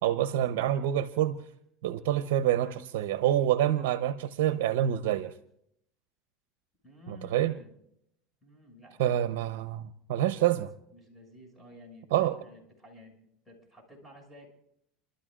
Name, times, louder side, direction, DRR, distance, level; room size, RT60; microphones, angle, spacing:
voice 1, 0.0-1.4 1.8-5.3 7.1-7.5 9.0-10.7 12.1-12.4, right 12 dB, 80° right, 0.7 m, -27 dB
voice 2, 6.8-7.7 8.4-9.2 10.9-13.1 13.4-14.5, left 1 dB, 5° left, 6.4 m, -52 dB
30.0 x 13.0 x 2.4 m
supercardioid pair, 110°, 0 cm